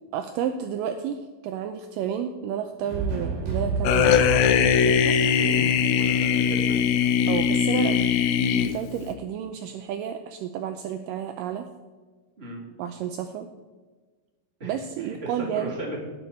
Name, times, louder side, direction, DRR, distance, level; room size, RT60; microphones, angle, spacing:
voice 1, 0.1-4.2 4.8-5.2 7.3-8.0 8.6-11.7 12.8-13.5 14.6-15.7, right 9 dB, 80° right, 7 dB, 2.0 m, -31 dB
sound 1, 2.8-6.7, right 3 dB, 65° right, 4.7 m, -31 dB
sound 2, 3.8-9.1, left 8 dB, 90° left, 1.7 m, -21 dB
voice 2, 5.4-6.8 12.4-12.6 14.6-16.0, right 1 dB, 15° right, -3 dB, 2.8 m, -36 dB
19.0 x 7.1 x 4.4 m, 1.3 s
omnidirectional pair, 4.4 m